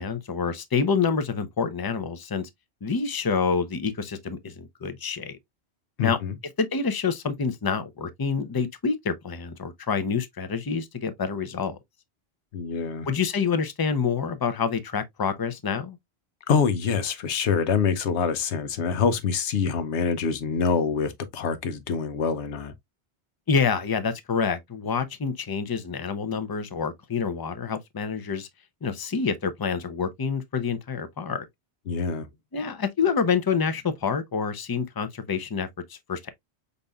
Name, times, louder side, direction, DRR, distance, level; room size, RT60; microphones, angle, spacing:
voice 1, 0.0-2.5 2.8-5.4 6.0-6.2 6.6-11.8 13.1-16.0 23.5-28.5 28.8-31.4 32.5-36.3, left 5 dB, 30° left, 0.5 m, -27 dB
voice 2, 6.0-6.4 12.5-13.1 16.5-22.7 31.9-32.3, left 6 dB, 85° left, 1.1 m, -25 dB
5.2 x 4.1 x 2.2 m
omnidirectional pair, 1.1 m